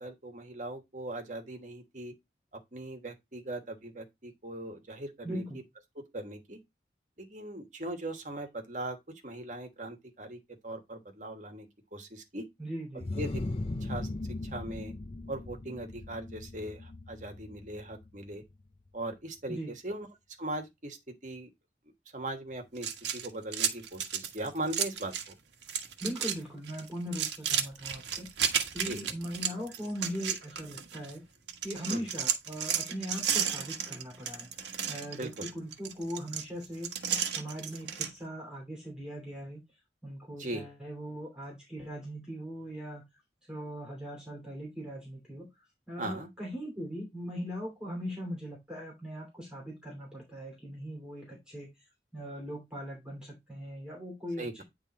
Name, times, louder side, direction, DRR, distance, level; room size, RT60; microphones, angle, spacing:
voice 1, 0.0-2.1 2.7-5.4 6.0-6.6 7.2-9.0 9.2-10.4 10.6-11.7 11.9-12.5 13.2-13.3 13.8-14.1 14.5-14.9 15.3-18.4 18.9-19.6 19.8-20.1 20.4-21.0 21.2-21.5 22.1-25.1 28.8-29.0 31.9-32.0 35.2-35.5 40.4-40.6 46.0-46.3 54.4-54.6, right 1 dB, 45° right, 1.4 m, -39 dB
voice 2, 5.2-5.6 12.6-13.1 19.5-19.7 26.0-28.3 28.7-31.2 31.6-34.5 34.9-36.9 37.3-39.6 40.0-43.0 43.5-45.5 45.9-51.7 52.1-54.6, equal, 5° right, 2.7 m, -40 dB
sound 1, 13.0-18.5, left 2 dB, 35° left, 0.4 m, -38 dB
sound 2, 22.8-25.3 25.6-26.4 26.7-31.1 31.5-38.1, right 8 dB, 90° right, 1.1 m, -33 dB
9.2 x 3.4 x 4.1 m
head